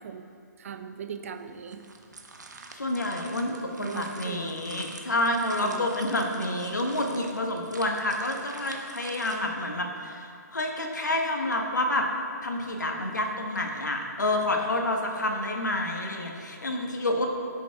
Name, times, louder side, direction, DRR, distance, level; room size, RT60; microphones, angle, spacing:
voice 1, 0.0-1.8 3.8-4.7 5.6-6.4, right 7 dB, 50° right, 7 dB, 0.6 m, -39 dB
sound 1, 1.4-9.4, right 3 dB, 75° right, 1.1 m, -46 dB
voice 2, 2.7-12.1 12.4-17.3, left 1 dB, 75° left, 2 dB, 1.4 m, -29 dB
16.0 x 6.7 x 2.4 m, 2.3 s
figure-of-eight pair, 130°, 10 cm